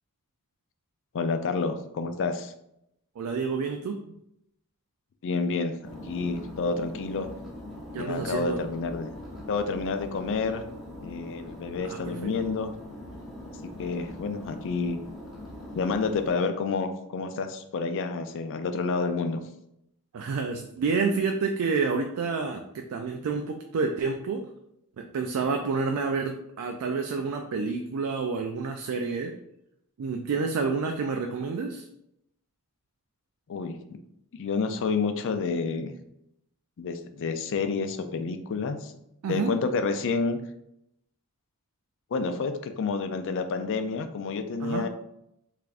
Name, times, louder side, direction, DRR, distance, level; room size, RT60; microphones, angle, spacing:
voice 1, 1.1-2.5 5.2-5.7 6.1-7.3 8.0-9.1 9.5-10.6 11.0-12.7 13.8-15.0 15.8-19.4 33.5-33.8 34.3-35.9 36.8-38.9 39.3-40.4 42.1-44.9, left 4 dB, 60° left, 8 dB, 0.4 m, -29 dB
voice 2, 3.2-4.0 7.9-8.6 11.8-12.2 20.1-24.4 25.0-29.3 30.0-31.9 39.2-39.5 44.6-44.9, right 4 dB, 75° right, 4 dB, 0.3 m, -29 dB
sound 1, 5.8-16.3, left 1 dB, ahead, 0.7 m, -42 dB
3.5 x 3.3 x 2.5 m, 0.80 s
head